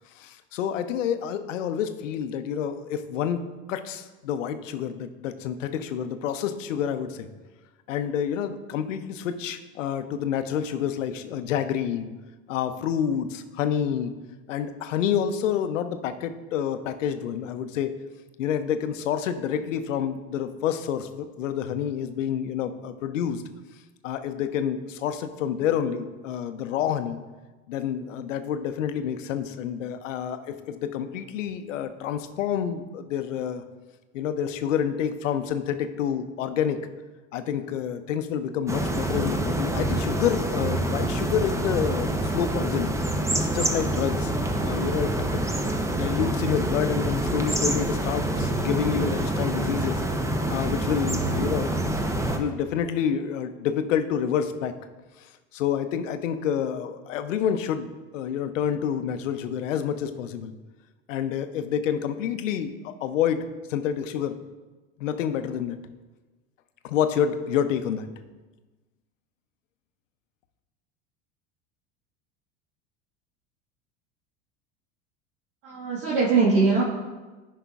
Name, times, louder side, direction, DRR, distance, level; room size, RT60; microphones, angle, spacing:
voice 1, 0.2-3.4 3.7-7.3 7.9-12.1 12.5-14.2 14.5-17.9 18.4-23.4 24.0-27.2 27.7-33.6 34.1-36.8 37.3-42.9 43.3-45.4 45.9-50.0 50.5-52.0 52.3-54.7 55.2-55.3 55.5-60.5 61.1-64.4 65.0-65.8 66.8-68.1, left 8 dB, 90° left, 10 dB, 0.6 m, -28 dB
sound 1, 38.7-52.4, right 1 dB, 10° right, 0.6 m, -26 dB
voice 2, 75.6-76.8, right 4 dB, 65° right, -7 dB, 1.6 m, -21 dB
10.0 x 5.5 x 2.4 m, 1.2 s
hypercardioid pair, 85°, 37 cm